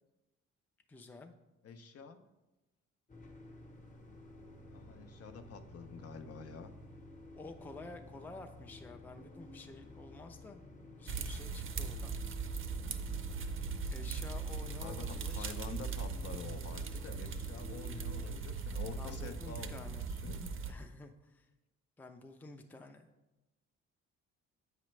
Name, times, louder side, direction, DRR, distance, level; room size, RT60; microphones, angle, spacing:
voice 1, 0.9-1.3 7.3-10.6 11.0-12.2 13.9-15.5 19.0-20.1 20.7-21.5 22.0-23.1, left 3 dB, 5° left, 5 dB, 0.4 m, -50 dB
voice 2, 1.6-2.2 4.7-6.7 14.8-20.4, left 5 dB, 50° left, 8 dB, 0.6 m, -48 dB
sound 1, 3.1-18.2, left 2 dB, 25° left, 1.0 m, -53 dB
sound 2, 11.1-20.7, right 5 dB, 45° right, 0.6 m, -39 dB
8.0 x 4.9 x 3.2 m, 1.0 s
cardioid pair, 90°, 30 cm